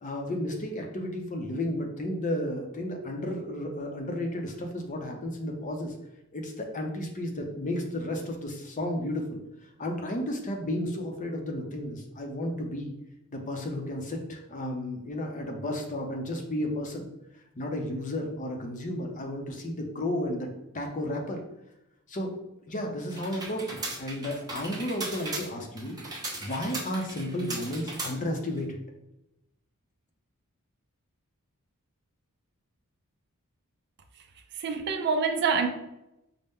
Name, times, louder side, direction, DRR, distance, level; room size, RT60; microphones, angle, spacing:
voice 1, 0.0-5.9 6.3-9.4 9.8-12.9 13.3-17.1 17.6-20.5 20.7-21.4 22.1-22.3 22.7-26.0 26.4-28.8, left 1 dB, 35° left, 0.6 m, -33 dB
typing hyperactive, 23.1-28.6, right 2 dB, 15° right, 0.9 m, -38 dB
voice 2, 34.6-35.7, right 5 dB, 50° right, 0.4 m, -26 dB
5.4 x 2.1 x 3.5 m
head